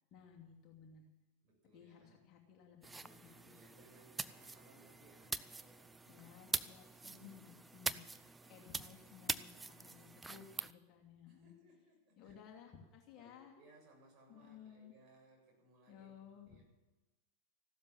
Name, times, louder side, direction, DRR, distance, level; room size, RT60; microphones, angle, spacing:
voice 1, 0.1-1.0 1.7-3.5 6.1-11.5 12.2-13.5 14.3-14.9 15.9-16.5, left 7 dB, 35° left, 0 dB, 2.7 m, -58 dB
voice 2, 1.4-2.2 2.8-6.2 7.1-7.6 8.2-8.7 9.5-10.6 11.3-12.4 13.2-16.6, right 1 dB, 35° right, 0 dB, 7.4 m, -66 dB
sound 1, 2.8-10.7, right 3 dB, 10° right, 0.6 m, -44 dB
15.5 x 12.5 x 7.3 m, 1.1 s
figure-of-eight pair, 90°, 0 cm